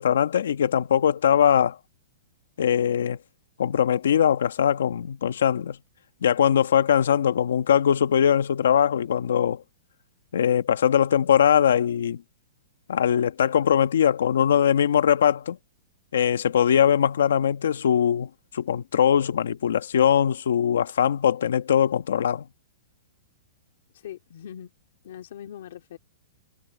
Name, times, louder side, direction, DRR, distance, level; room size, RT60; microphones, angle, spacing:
voice 1, 0.0-1.8 2.6-3.2 3.6-5.8 6.2-9.6 10.3-12.2 12.9-15.6 16.1-22.4, left 9 dB, 70° left, 1.2 m, -21 dB
voice 2, 23.9-24.7 25.0-26.0, left 10 dB, 50° left, 2.6 m, -41 dB
hypercardioid pair, 180°, 0 cm